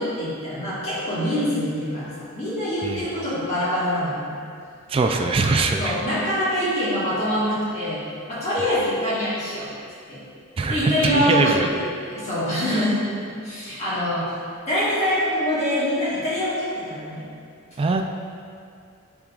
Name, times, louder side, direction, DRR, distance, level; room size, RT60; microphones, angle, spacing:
voice 1, 0.0-4.3 5.8-8.0 8.3-9.7 10.1-10.2 10.7-13.0 13.4-14.3 14.7-17.2, equal, 30° left, -11 dB, 1.6 m, -24 dB
voice 2, 4.9-6.0 10.6-11.7 12.7-12.9 17.8-18.0, right 3 dB, 25° right, 3 dB, 0.3 m, -22 dB
10.5 x 4.6 x 2.4 m, 2.3 s
head